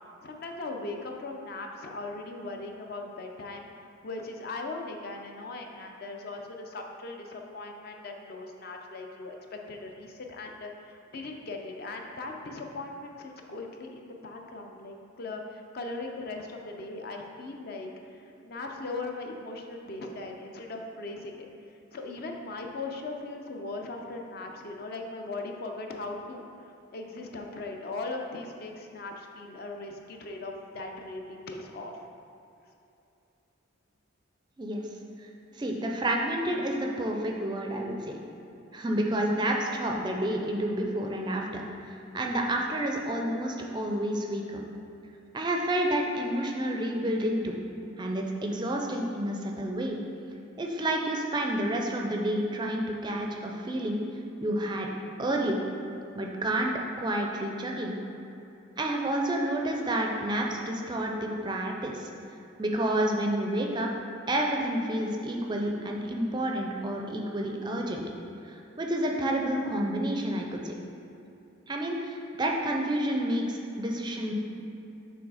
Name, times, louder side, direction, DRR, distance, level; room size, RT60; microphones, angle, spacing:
voice 1, 0.2-31.9, left 2 dB, 50° left, 2 dB, 0.5 m, -39 dB
voice 2, 35.6-38.1 38.7-41.6 41.9-44.6 45.3-47.6 48.0-50.0 50.6-54.0 54.4-54.9 55.2-55.6 56.1-56.7 57.0-58.0 58.8-62.1 62.6-63.9 64.3-68.0 68.4-70.7 71.7-74.3, right 1 dB, 20° right, 1 dB, 0.4 m, -29 dB
6.3 x 3.3 x 4.8 m, 2.8 s
head